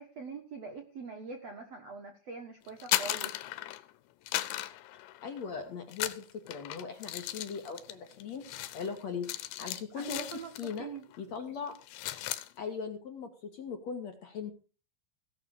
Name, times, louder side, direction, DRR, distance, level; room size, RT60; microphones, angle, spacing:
voice 1, 0.0-3.3 9.9-10.5 10.8-11.0, right 5 dB, 60° right, 4 dB, 1.8 m, -43 dB
sound 1, 2.7-3.9 4.3-5.5 5.9-10.8 11.1-11.4 11.7-12.5, left 15 dB, 85° left, 3.2 m, -36 dB
voice 2, 5.2-9.3 9.6-10.3 10.6-10.9 11.2-11.8 12.6-14.5, left 5 dB, 50° left, 4 dB, 2.4 m, -39 dB
17.0 x 6.9 x 6.6 m, 0.36 s
omnidirectional pair, 5.0 m